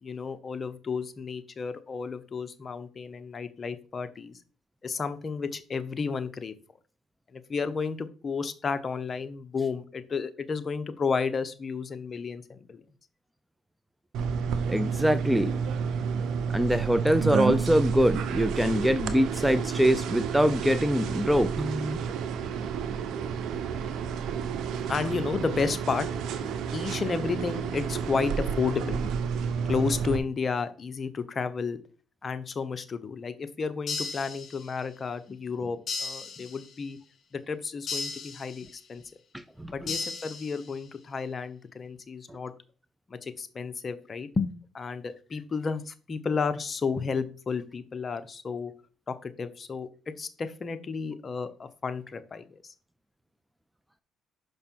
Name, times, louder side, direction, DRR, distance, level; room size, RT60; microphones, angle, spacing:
voice 1, 0.0-4.4 4.8-6.5 7.3-12.8 24.9-26.1 26.7-29.1 29.6-31.8 32.2-37.0 37.3-39.0 39.7-42.5 43.1-44.5 44.7-48.7 49.1-49.9 50.2-52.7, left 5 dB, 40° left, 0.9 m, -32 dB
sound 1, 14.1-30.2, right 6 dB, 75° right, 0.7 m, -30 dB
voice 2, 14.7-15.5 16.5-22.0 39.3-39.9, equal, 5° right, 0.5 m, -24 dB
sound 2, 33.9-34.9 35.9-36.9 37.9-38.9 39.9-40.9, left 4 dB, 55° left, 1.9 m, -36 dB
6.0 x 5.3 x 4.5 m
cardioid pair, 85°, 0 cm